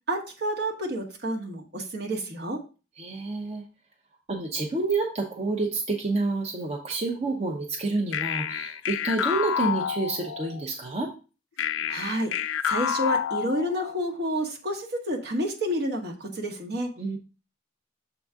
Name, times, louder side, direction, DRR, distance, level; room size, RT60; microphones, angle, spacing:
voice 1, 0.1-2.6 11.9-12.3 12.7-16.9, equal, 60° right, 1 dB, 1.3 m, -29 dB
voice 2, 3.0-3.6 4.3-11.1 17.0-17.2, right 3 dB, 35° right, 1 dB, 0.7 m, -28 dB
sound 1, 8.1-10.6 11.6-14.1, left 8 dB, 90° left, 0.3 m, -29 dB
7.0 x 3.9 x 3.6 m, 0.33 s
head